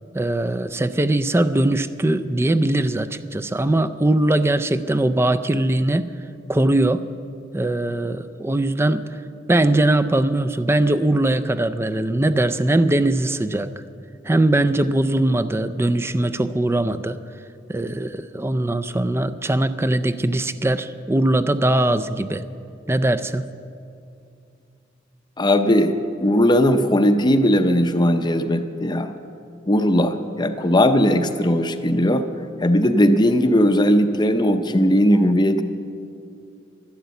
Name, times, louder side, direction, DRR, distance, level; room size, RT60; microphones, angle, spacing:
voice 1, 0.1-6.1 6.5-7.0 7.5-9.1 9.5-13.7 14.2-17.2 17.7-22.4 22.9-23.5, right 1 dB, 15° right, 13 dB, 0.4 m, -21 dB
voice 2, 25.4-25.9 26.2-29.1 29.7-32.2 32.6-35.6, equal, 25° left, 8 dB, 0.6 m, -18 dB
12.0 x 12.0 x 8.2 m, 2.6 s
head